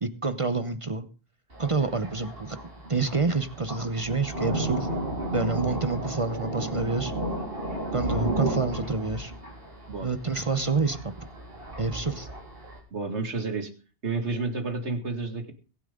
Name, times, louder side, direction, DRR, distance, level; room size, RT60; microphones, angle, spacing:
voice 1, 0.0-1.1 1.6-2.6 2.9-4.9 5.3-7.1 7.9-9.3 10.0-11.1 11.8-12.3, right 4 dB, 30° right, 12 dB, 0.9 m, -28 dB
Thunder, 1.5-12.8, right 1 dB, 55° right, 4.3 m, -34 dB
voice 2, 12.9-13.7 14.0-15.5, right 3 dB, 85° right, 7 dB, 2.3 m, -30 dB
22.0 x 8.8 x 3.8 m, 0.35 s
omnidirectional pair, 1.1 m